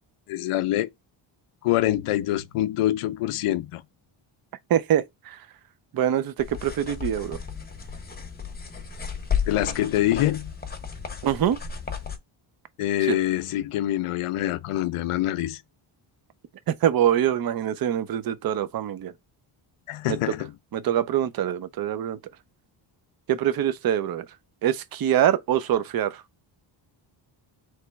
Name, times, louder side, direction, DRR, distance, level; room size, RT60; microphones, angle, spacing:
voice 1, 0.3-0.9 1.6-3.8 9.5-10.5 12.8-15.6 19.9-20.5, left 14 dB, 85° left, 0.6 m, -25 dB
voice 2, 4.7-5.4 5.9-7.4 11.2-11.6 13.1-13.2 16.7-19.1 20.1-20.2 20.7-22.2 23.3-24.3 24.6-26.2, right 10 dB, 45° right, 0.5 m, -24 dB
sound 1, 6.4-12.2, left 7 dB, 20° left, 0.7 m, -33 dB
3.3 x 3.0 x 4.5 m
wide cardioid pair, 140°, 50 cm